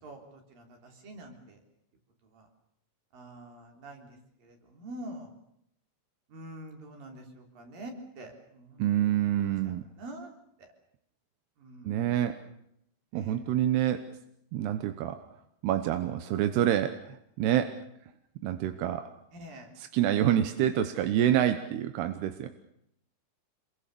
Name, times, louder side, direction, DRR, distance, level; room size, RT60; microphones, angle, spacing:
voice 1, 0.0-1.6 2.3-2.5 3.1-4.1 4.4-5.3 6.3-9.4 9.6-10.3 11.6-12.0 13.1-13.4 19.3-19.7, right 1 dB, 60° right, 3 dB, 5.5 m, -46 dB
voice 2, 8.8-9.8 11.8-12.4 13.1-14.1 14.5-15.2 15.6-17.8 18.4-19.1 19.8-22.5, right 11 dB, 90° right, 8 dB, 3.2 m, -27 dB
27.0 x 22.5 x 6.9 m, 0.75 s
omnidirectional pair, 4.5 m